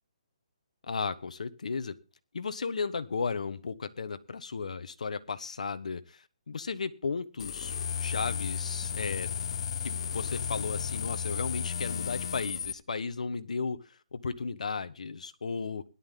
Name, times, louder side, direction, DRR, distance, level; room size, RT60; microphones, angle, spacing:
voice 1, 0.9-1.9 2.3-9.3 9.8-13.8 14.1-15.8, left 5 dB, 80° left, 11 dB, 1.3 m, -35 dB
sound 1, 7.4-12.7, left 7 dB, 50° left, 0.7 m, -34 dB
17.5 x 11.0 x 3.9 m, 0.33 s
hypercardioid pair, 160°, 4 cm